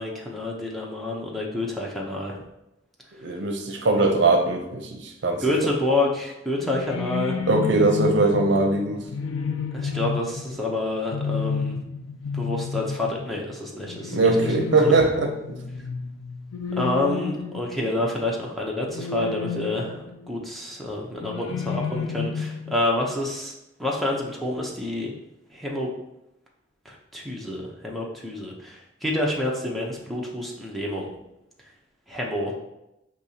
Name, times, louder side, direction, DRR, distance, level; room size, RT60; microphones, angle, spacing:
voice 1, 0.0-2.4 4.1-4.3 5.4-7.4 9.7-11.7 12.3-14.5 14.8-14.9 16.7-23.5 23.8-25.1 25.5-25.9 26.9-31.1 32.1-32.6, left 1 dB, ahead, -3 dB, 0.6 m, -28 dB
voice 2, 3.2-5.5 7.5-9.0 14.1-15.3, right 3 dB, 60° right, 3 dB, 0.6 m, -21 dB
sound 1, 6.6-18.2 18.9-20.3 21.2-22.8, left 5 dB, 80° left, 0.4 m, -31 dB
6.6 x 2.8 x 2.7 m, 0.89 s
head